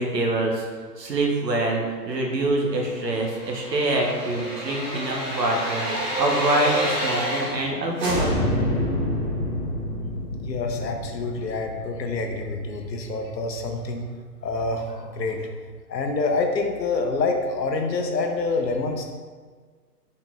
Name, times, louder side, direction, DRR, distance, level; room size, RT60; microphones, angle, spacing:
voice 1, 0.0-8.4, right 2 dB, 80° right, 0 dB, 1.1 m, -25 dB
sound 1, 3.0-7.7 8.0-12.8 13.2-13.3, equal, 30° right, 1.2 m, -28 dB
voice 2, 10.4-14.1 14.4-15.4 15.9-19.0, left 3 dB, 80° left, 4 dB, 0.8 m, -27 dB
4.2 x 3.6 x 2.4 m, 1.5 s
hypercardioid pair, 135°, 49 cm